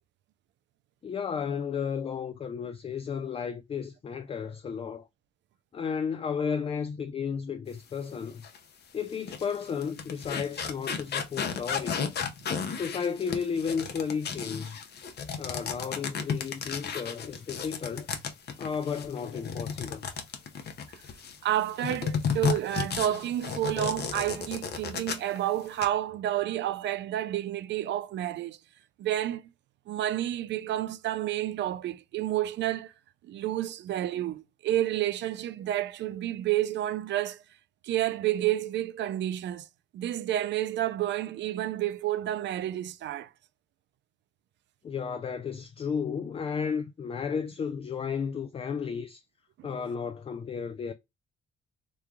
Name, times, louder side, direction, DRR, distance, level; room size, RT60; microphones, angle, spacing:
voice 1, 1.0-5.1 5.7-8.5 8.9-12.0 12.7-14.8 15.4-18.1 18.6-20.0 44.8-49.2 49.6-50.9, left 6 dB, 30° left, 0.3 m, -33 dB
sound 1, 8.4-8.6 9.1-21.4 21.8-25.4 25.6-25.9, left 6 dB, 55° left, 0.7 m, -33 dB
voice 2, 21.4-28.6 29.0-29.4 29.9-32.9 33.2-37.4 37.8-39.7 39.9-43.3 49.6-49.7, right 13 dB, 65° right, 0.4 m, -30 dB
3.1 x 2.3 x 3.5 m
cardioid pair, 90°, 20 cm